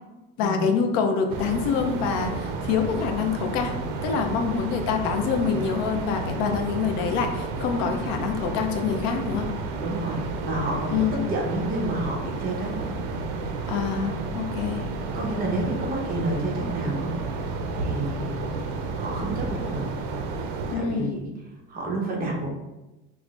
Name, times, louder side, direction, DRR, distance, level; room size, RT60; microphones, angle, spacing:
voice 1, 0.4-3.7 4.0-9.5 10.9-11.2 13.7-14.9 20.7-21.2, left 6 dB, 70° left, 5 dB, 0.6 m, -26 dB
sound 1, 1.3-20.8, right 3 dB, 80° right, 0.5 m, -31 dB
voice 2, 9.8-13.0 15.1-17.4 17.7-18.4 19.0-19.9 20.7-21.3 21.7-22.5, right 2 dB, 30° right, -1 dB, 0.9 m, -29 dB
4.7 x 2.1 x 2.4 m, 1.0 s
cardioid pair, 140°, 29 cm